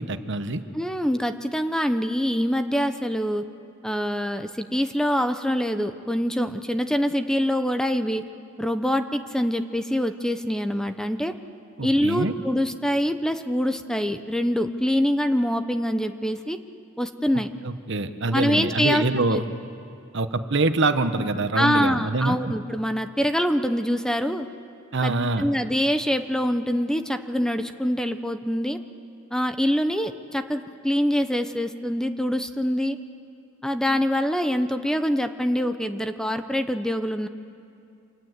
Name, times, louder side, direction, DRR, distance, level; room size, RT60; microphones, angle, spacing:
voice 1, 0.0-0.6 11.8-12.3 17.6-19.4 20.1-22.5 24.9-25.5, right 2 dB, 60° right, 9 dB, 1.2 m, -25 dB
voice 2, 0.7-3.4 3.8-8.2 8.6-11.3 11.8-16.6 17.0-17.5 18.3-19.4 21.5-24.5 25.0-25.1 25.4-28.8 29.3-33.0 33.6-37.3, equal, 5° left, 8 dB, 0.8 m, -25 dB
28.5 x 26.0 x 8.1 m, 2.5 s
head